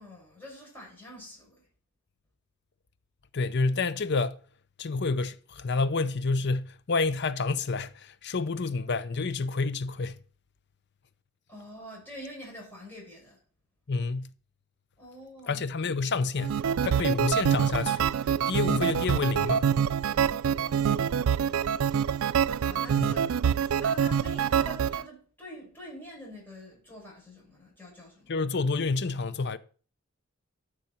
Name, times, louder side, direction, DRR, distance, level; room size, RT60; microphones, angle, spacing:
voice 1, 0.0-1.6 11.5-13.4 15.0-15.7 20.0-20.4 20.8-21.8 22.6-28.4, equal, 10° left, 6.7 m, -46 dB
voice 2, 3.3-4.4 4.8-10.2 13.9-14.3 15.5-18.1 18.5-19.7 23.0-23.1 28.3-29.6, left 4 dB, 55° left, 0.7 m, -29 dB
sound 1, 16.4-25.0, right 8 dB, 85° right, 0.4 m, -26 dB
13.0 x 6.7 x 4.4 m
head